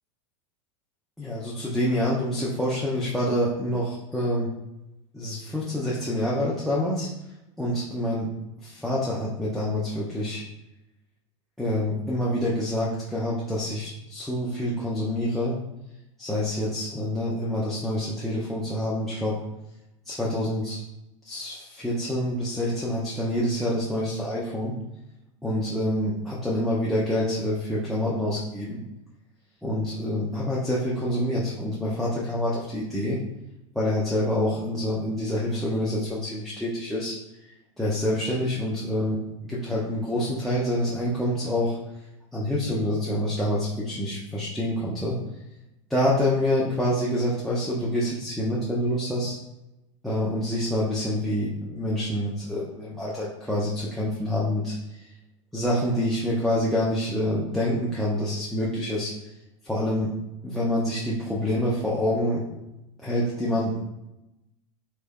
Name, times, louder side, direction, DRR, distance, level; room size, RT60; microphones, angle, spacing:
voice 1, 1.2-4.5 5.1-7.1 7.6-8.3 8.6-10.4 11.6-15.6 16.2-19.4 20.1-20.8 21.2-24.7 25.4-28.8 29.6-33.2 33.7-37.1 37.8-41.8 42.3-45.2 45.9-49.4 50.0-54.8 55.5-59.1 59.6-60.1 60.4-62.4 63.0-63.8, left 1 dB, ahead, -6 dB, 0.6 m, -27 dB
3.3 x 3.1 x 2.2 m, 0.91 s
hypercardioid pair, 100°, 17 cm